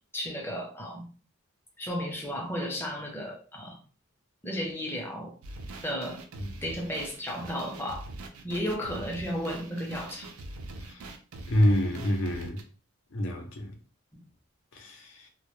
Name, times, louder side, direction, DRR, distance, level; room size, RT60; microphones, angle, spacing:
voice 1, 0.1-1.1 1.8-3.8 4.4-5.4 5.8-6.2 6.6-8.1 8.4-10.3 14.1-14.2, equal, 10° left, 0.5 m, -34 dB
sound 1, 5.4-12.6, right 2 dB, 85° right, 0.4 m, -43 dB
voice 2, 11.5-12.6 13.1-13.7 14.7-15.3, equal, 65° left, 0.6 m, -27 dB
2.1 x 2.1 x 3.0 m
head